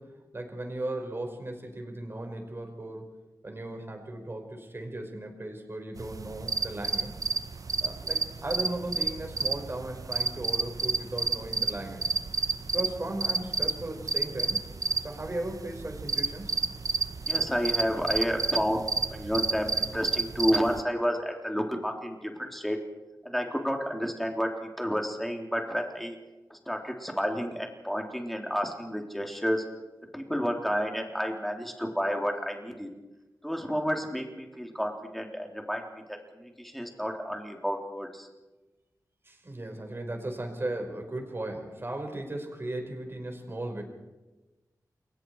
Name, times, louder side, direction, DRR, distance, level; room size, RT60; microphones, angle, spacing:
voice 1, 0.0-3.0 3.4-7.2 7.8-12.0 12.7-14.6 15.0-16.6 29.3-29.4 39.2-43.8, right 1 dB, 35° right, 3 dB, 5.1 m, -36 dB
sound 1, 6.0-20.8, right 4 dB, 55° right, 0.9 m, -31 dB
voice 2, 17.3-18.8 19.1-22.8 23.2-24.5 24.8-26.2 26.5-29.6 30.1-32.9 33.4-38.3, equal, ahead, 2 dB, 3.4 m, -30 dB
29.5 x 22.0 x 4.8 m, 1.1 s
wide cardioid pair, 85°, 7 cm